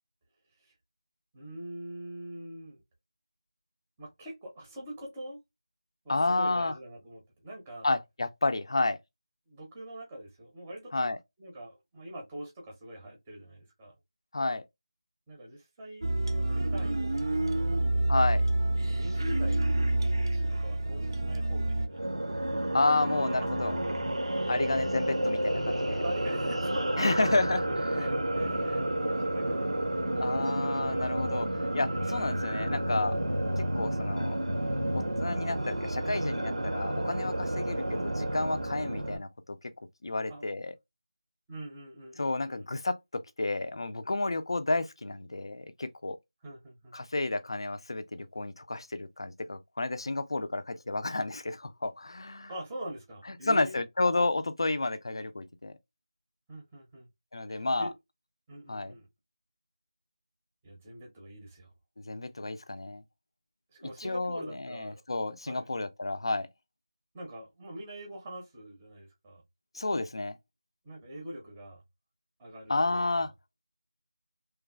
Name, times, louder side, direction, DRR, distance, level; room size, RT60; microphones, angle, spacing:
voice 1, 1.3-2.8 4.0-5.4 6.0-7.9 9.5-11.1 11.4-13.9 15.3-17.9 18.9-19.7 20.0-24.0 24.4-24.7 26.0-30.8 37.5-38.0 40.3-40.4 41.5-42.6 46.4-47.0 52.5-53.8 56.5-57.1 57.5-57.9 58.5-59.1 60.6-61.7 63.7-65.0 65.5-65.7 67.1-69.4 70.8-71.8 72.4-73.3, right 1 dB, 10° right, 0.6 m, -44 dB
voice 2, 6.1-6.7 7.8-9.0 10.9-11.2 14.3-14.6 18.1-18.4 22.7-23.7 24.5-26.0 27.0-28.1 30.2-31.5 31.7-33.2 33.6-34.4 34.9-39.6 40.0-40.7 42.2-46.2 46.9-52.5 53.5-55.7 57.3-57.9 58.7-58.9 62.0-63.0 63.8-66.5 69.7-70.4 72.7-73.3, left 2 dB, 55° left, 0.4 m, -31 dB
sound 1, 16.0-21.9, right 1 dB, 50° right, 0.4 m, -28 dB
sound 2, 21.9-39.2, right 1 dB, 85° right, 0.8 m, -30 dB
3.0 x 2.2 x 2.3 m
figure-of-eight pair, 170°, 3 cm